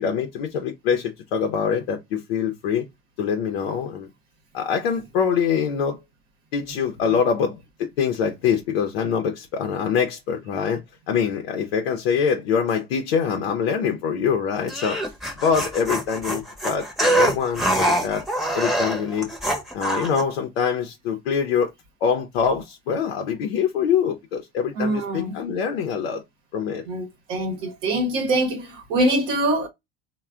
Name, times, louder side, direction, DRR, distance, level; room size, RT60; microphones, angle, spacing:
voice 1, 0.0-2.9 3.2-4.1 4.5-6.0 6.5-10.8 11.1-15.0 15.4-16.9 17.2-18.3 18.5-19.3 19.7-21.7 22.0-26.2 26.5-26.8, left 7 dB, 90° left, 0.6 m, -24 dB
sound 1, 14.7-20.2, right 1 dB, ahead, 0.8 m, -24 dB
voice 2, 24.8-25.4 26.9-29.7, right 1 dB, 70° right, 0.8 m, -24 dB
3.2 x 2.1 x 2.3 m
supercardioid pair, 100°, 30 cm